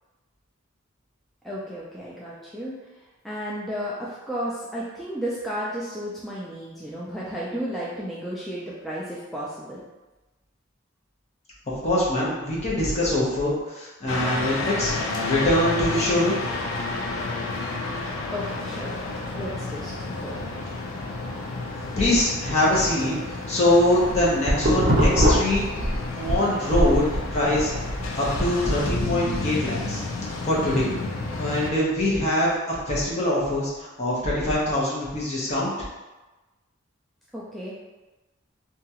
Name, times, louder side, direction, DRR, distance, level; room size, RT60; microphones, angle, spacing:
voice 1, 1.4-2.8 3.2-9.8 18.3-18.9 19.3-20.5 37.3-37.7, equal, ahead, -8 dB, 0.3 m, -33 dB
voice 2, 11.8-15.0 15.3-16.4 22.0-23.1 23.5-25.6 26.2-27.0 27.3-27.7 28.1-30.0 30.4-30.9 31.4-35.7, left 1 dB, 35° left, -6 dB, 0.8 m, -23 dB
sound 1, 14.1-31.7, left 3 dB, 85° left, 0.4 m, -31 dB
sound 2, 24.0-26.4 26.7-29.1, equal, 45° right, 0.6 m, -22 dB
2.8 x 2.3 x 2.8 m, 1.1 s
head